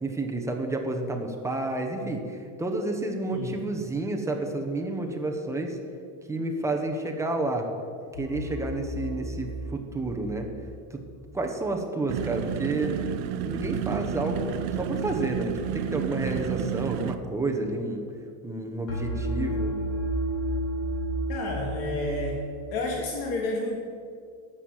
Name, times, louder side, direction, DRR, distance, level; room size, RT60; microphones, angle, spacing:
voice 1, 0.0-5.8 6.3-7.7 8.1-10.5 10.9-11.0 11.3-13.0 13.4-18.1 18.4-19.8, right 2 dB, 10° right, 2 dB, 1.0 m, -30 dB
sound 1, 8.1-11.2 18.9-22.9, equal, 45° left, 3.7 m, -32 dB
sound 2, 12.1-17.2, right 9 dB, 80° right, 0.8 m, -31 dB
voice 2, 21.3-22.4 22.7-23.8, left 2 dB, 70° left, 0 dB, 1.9 m, -30 dB
11.0 x 7.4 x 7.7 m, 2.3 s
cardioid pair, 165°, 38 cm